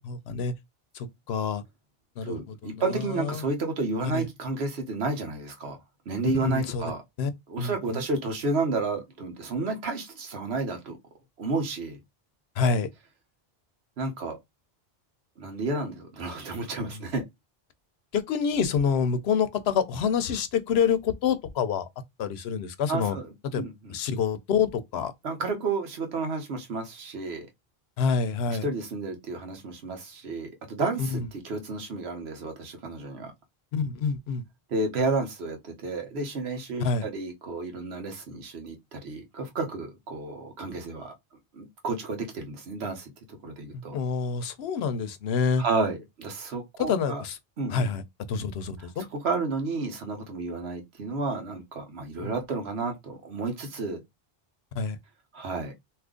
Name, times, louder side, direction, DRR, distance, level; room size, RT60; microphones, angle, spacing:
voice 1, 0.1-0.5 0.9-1.6 2.2-3.4 4.1-4.3 6.2-6.8 7.2-7.3 7.6-8.0 12.6-12.9 16.8-17.1 18.1-21.9 22.2-23.2 23.5-23.6 23.9-25.1 28.0-28.7 31.0-31.2 33.7-34.4 36.8-37.1 43.7-45.6 46.8-47.4 47.7-48.0 48.3-49.0 52.2-52.4 54.7-55.0, left 6 dB, 85° left, 0.9 m, -27 dB
voice 2, 2.2-5.8 6.1-7.0 7.5-11.0 11.4-12.0 14.0-14.4 15.4-17.2 22.9-23.9 25.2-27.5 28.5-33.3 34.7-41.1 41.5-44.0 45.6-47.2 47.6-47.9 48.8-54.0 55.3-55.7, right 3 dB, 85° right, 1.2 m, -31 dB
2.7 x 2.5 x 3.7 m
omnidirectional pair, 1.0 m